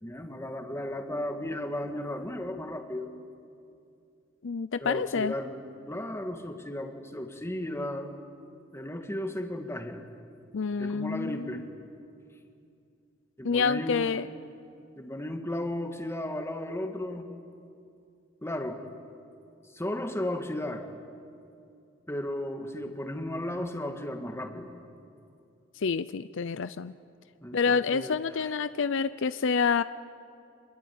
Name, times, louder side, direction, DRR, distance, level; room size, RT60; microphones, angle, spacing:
voice 1, 0.0-3.1 4.8-5.6 5.9-8.1 8.7-10.0 10.8-11.6 13.4-14.2 15.0-17.3 18.4-18.8 19.7-20.9 22.1-24.7 27.4-28.5, left 1 dB, 15° left, 5 dB, 1.9 m, -35 dB
voice 2, 4.4-5.3 10.5-11.6 13.4-14.3 25.8-26.9 27.5-29.8, left 5 dB, 65° left, 14 dB, 0.5 m, -28 dB
26.0 x 22.0 x 9.4 m, 2.5 s
head